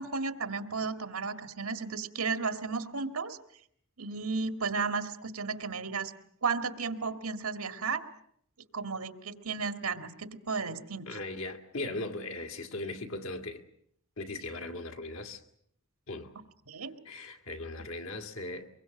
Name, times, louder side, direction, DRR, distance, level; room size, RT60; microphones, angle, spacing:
voice 1, 0.0-3.4 4.0-6.1 6.4-8.0 8.7-11.1 16.7-17.0, right 4 dB, 90° right, 1.9 m, -34 dB
voice 2, 11.1-13.6 14.2-15.4 16.1-16.3 17.1-18.7, left 2 dB, 65° left, 2.1 m, -38 dB
24.0 x 22.5 x 7.8 m
head